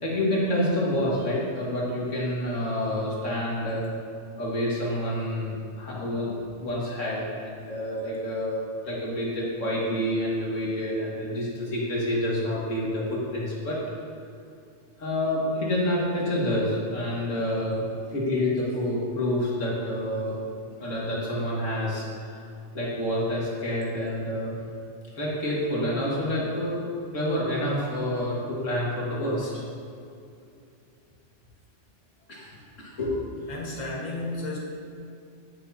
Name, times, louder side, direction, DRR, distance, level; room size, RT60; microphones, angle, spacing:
voice 1, 0.0-3.8 4.4-13.8 15.0-17.8 18.1-20.4 20.8-22.4 22.7-24.6 25.1-26.8 27.1-29.5 32.3-33.3, left 1 dB, 90° left, -6 dB, 2.3 m, -28 dB
voice 2, 33.5-34.6, left 2 dB, 35° left, -5 dB, 1.6 m, -33 dB
16.5 x 6.3 x 2.8 m, 2.5 s
omnidirectional pair, 1.3 m